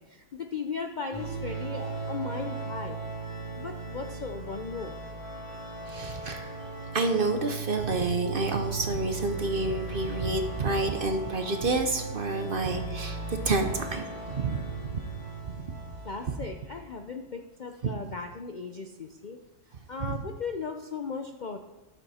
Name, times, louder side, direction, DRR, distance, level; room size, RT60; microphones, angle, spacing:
voice 1, 0.0-3.0 3.5-5.0 16.0-19.4 19.9-21.6, left 5 dB, 90° left, 4 dB, 0.4 m, -37 dB
sound 1, 1.1-17.0, right 3 dB, 20° left, 2.1 m, -37 dB
voice 2, 5.9-6.5 6.9-15.0 17.8-17.9 20.0-20.2, right 3 dB, 45° right, 5 dB, 0.8 m, -29 dB
11.0 x 7.3 x 4.2 m, 1.0 s
omnidirectional pair, 1.6 m